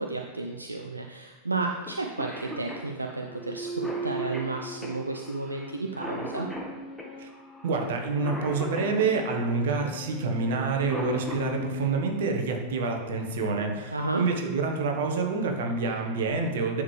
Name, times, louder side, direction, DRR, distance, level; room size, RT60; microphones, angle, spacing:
voice 1, 0.0-6.5 13.9-14.2, right 3 dB, 80° right, 2 dB, 0.5 m, -32 dB
Cough, 1.9-2.0 2.2-9.5 10.6-11.7 13.3-13.4 14.4-14.7 15.2-15.3 15.7-16.1, left 1 dB, ahead, 1.4 m, -39 dB
sound 1, 3.3-12.9, right 1 dB, 30° left, 1.3 m, -40 dB
voice 2, 7.6-16.8, right 4 dB, 55° right, 3 dB, 1.3 m, -27 dB
9.8 x 6.5 x 3.3 m, 1.2 s
figure-of-eight pair, 90°, 0 cm